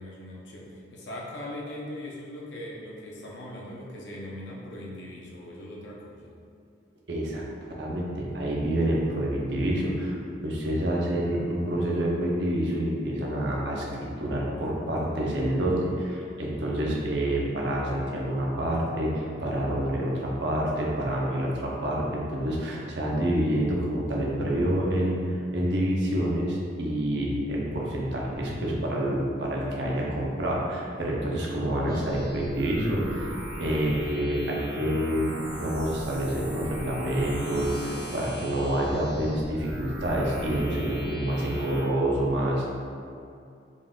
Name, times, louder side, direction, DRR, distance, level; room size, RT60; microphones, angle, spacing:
voice 1, 0.0-6.3, left 1 dB, 75° left, -3 dB, 0.7 m, -40 dB
voice 2, 7.1-7.4 7.8-10.1 10.4-33.3 33.6-42.6, right 1 dB, 65° right, -3 dB, 0.7 m, -27 dB
sound 1, 31.9-41.8, equal, 25° right, 1.4 m, -38 dB
3.9 x 2.4 x 3.6 m, 2.4 s
head